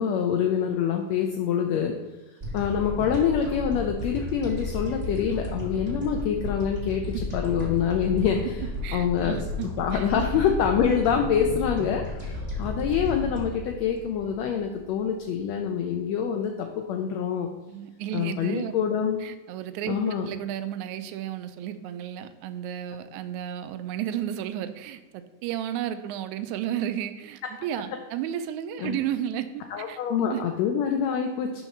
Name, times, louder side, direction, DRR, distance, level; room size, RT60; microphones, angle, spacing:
voice 1, 0.0-1.9 2.5-8.6 8.9-9.4 9.8-17.5 18.1-19.2 19.9-20.3 28.8-29.0 29.7-31.6, left 7 dB, 85° left, 4 dB, 1.5 m, -26 dB
sound 1, 2.4-14.9, left 2 dB, 15° right, 1.7 m, -33 dB
voice 2, 8.8-9.7 9.9-10.1 15.6-15.7 17.7-18.7 19.2-30.0 30.3-30.4, right 11 dB, 80° right, 10 dB, 1.8 m, -33 dB
7.1 x 4.5 x 5.9 m, 1.2 s
omnidirectional pair, 3.7 m